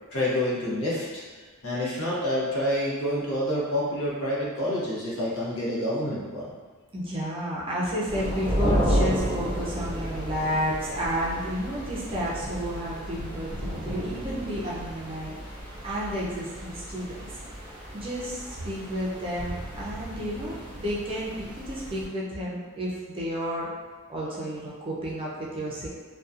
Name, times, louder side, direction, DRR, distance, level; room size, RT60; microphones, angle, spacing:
voice 1, 0.1-1.2 1.6-6.4, left 1 dB, 65° left, -7 dB, 0.9 m, -28 dB
voice 2, 6.9-15.3 15.8-17.4 17.9-23.7 24.1-25.9, equal, 25° right, -6 dB, 0.5 m, -31 dB
sound 1, 8.1-22.1, right 1 dB, 5° left, 1.2 m, -32 dB
2.7 x 2.3 x 2.4 m, 1.4 s
head